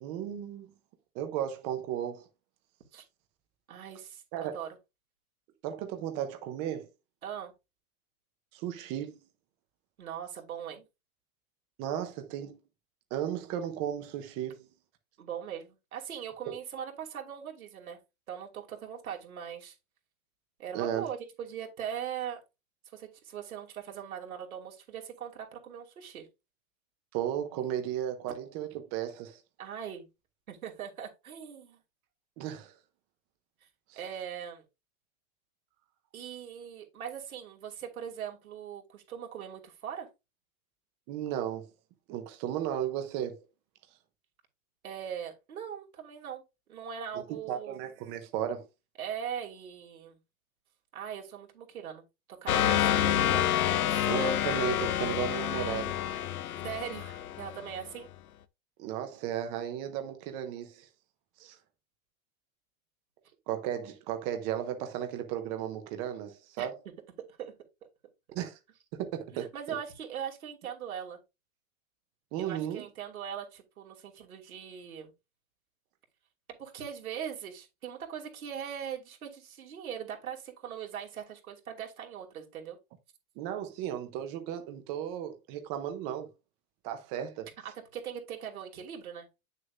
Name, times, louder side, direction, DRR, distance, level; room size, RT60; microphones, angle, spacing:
voice 1, 0.0-0.7 1.1-2.3 4.3-4.5 5.6-6.9 8.5-9.2 11.8-12.6 13.1-14.7 20.7-21.1 27.1-29.4 32.4-32.7 33.9-34.0 41.1-41.7 42.1-43.4 47.5-48.7 54.1-56.0 58.8-60.9 61.4-61.6 63.5-66.8 68.3-68.6 68.9-69.5 72.3-72.8 83.4-86.3 86.8-87.5, right 10 dB, 15° right, 0.6 m, -34 dB
voice 2, 3.7-4.8 7.2-7.5 10.0-10.8 15.2-18.0 18.3-19.7 20.6-22.4 22.9-26.3 29.6-30.1 30.5-31.8 33.6-33.7 33.9-34.6 36.1-40.1 44.8-46.4 46.7-47.8 49.0-50.2 50.9-52.0 52.4-53.5 53.9-54.1 56.6-58.1 66.6-66.7 67.4-67.5 69.3-71.2 72.4-75.1 76.6-82.8 87.6-89.3, right 8 dB, 85° right, 2.8 m, -40 dB
sound 1, 52.5-57.9, left 11 dB, 85° left, 0.9 m, -28 dB
9.1 x 6.5 x 2.5 m
hypercardioid pair, 170°, 42 cm